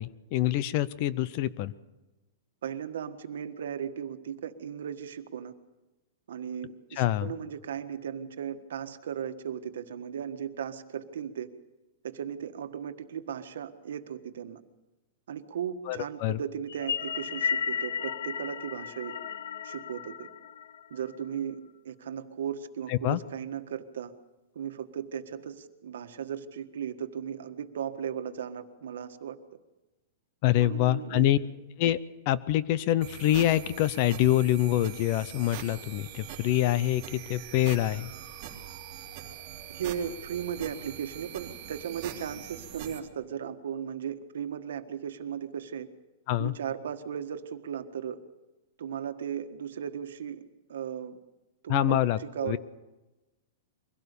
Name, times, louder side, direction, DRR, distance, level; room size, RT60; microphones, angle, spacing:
voice 1, 0.0-1.7 7.0-7.3 15.9-16.4 22.9-23.2 30.4-31.4 31.8-32.0 32.3-38.1 46.3-46.5 51.7-52.6, left 13 dB, 35° left, 18 dB, 0.6 m, -26 dB
voice 2, 2.6-5.5 6.3-11.5 12.0-14.6 15.3-19.1 19.6-20.3 20.9-24.1 24.5-29.4 30.5-31.3 39.7-45.9 46.4-48.2 48.8-50.4 50.7-51.2 51.6-52.6, right 8 dB, 75° right, 8 dB, 1.5 m, -36 dB
sound 1, 16.7-21.2, left 7 dB, 85° left, 0.7 m, -34 dB
sound 2, 33.0-43.0, right 9 dB, 25° right, 3.0 m, -43 dB
23.5 x 17.0 x 6.9 m, 1.1 s
supercardioid pair, 175°, 0 cm